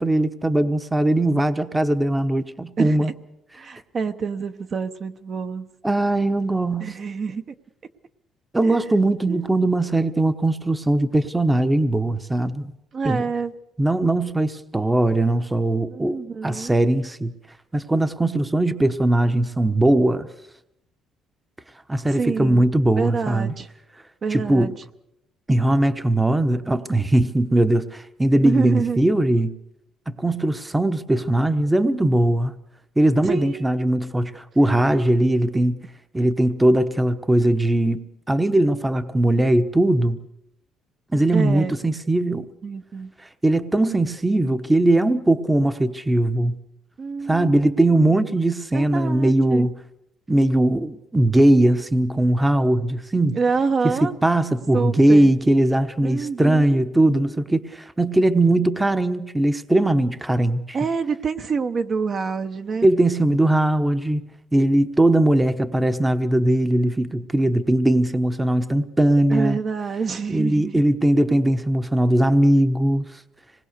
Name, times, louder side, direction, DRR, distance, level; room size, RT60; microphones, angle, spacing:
voice 1, 0.0-3.1 5.8-7.0 8.5-12.7 13.0-13.3 13.8-17.3 17.7-20.3 21.9-23.5 24.3-24.7 25.5-29.5 30.1-32.5 33.0-35.8 36.1-40.2 41.1-42.5 43.4-46.6 47.3-49.7 50.3-53.4 53.8-60.8 62.8-64.2 64.5-69.6 70.3-73.2, right 1 dB, 10° right, 1.0 m, -20 dB
voice 2, 2.8-3.1 3.6-5.7 6.8-7.4 8.6-8.8 9.3-9.4 12.9-13.5 15.9-16.7 22.1-22.6 22.9-23.7 24.2-24.7 28.4-29.0 33.2-33.9 41.3-41.8 42.6-43.1 47.0-47.8 48.7-49.7 53.3-54.1 54.7-55.3 56.0-56.8 60.7-62.9 69.3-70.8, right 5 dB, 40° right, 1.0 m, -27 dB
26.0 x 20.0 x 6.7 m
cardioid pair, 120°, 0 cm